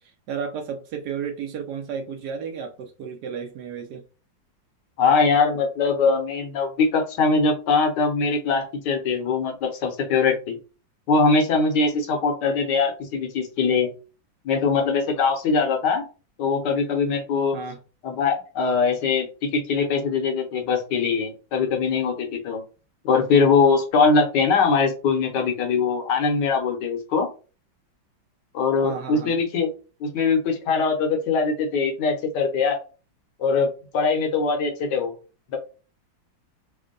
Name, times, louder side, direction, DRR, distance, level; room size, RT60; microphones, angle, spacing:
voice 1, 0.0-4.0 17.5-17.8 28.8-29.3, right 6 dB, 70° right, 1.0 m, -33 dB
voice 2, 5.0-10.6 11.1-13.9 14.4-16.0 16.4-17.6 18.0-22.6 23.0-27.3 28.5-29.7 30.0-32.8 33.4-35.1 35.5-35.6, left 4 dB, 70° left, 1.3 m, -22 dB
3.5 x 2.1 x 3.8 m
omnidirectional pair, 2.1 m